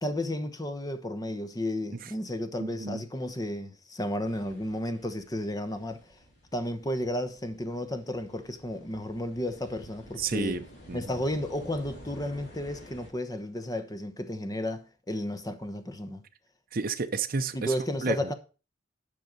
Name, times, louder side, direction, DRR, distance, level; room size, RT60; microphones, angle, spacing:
voice 1, 0.0-6.1 6.5-10.6 10.9-16.2 17.5-18.3, left 1 dB, 20° left, 1.0 m, -33 dB
voice 2, 2.6-3.0 10.2-11.0 16.7-17.7 18.0-18.2, right 4 dB, 50° right, 0.7 m, -31 dB
sound 1, 4.2-13.1, equal, 60° left, 2.7 m, -51 dB
11.0 x 5.6 x 5.2 m
head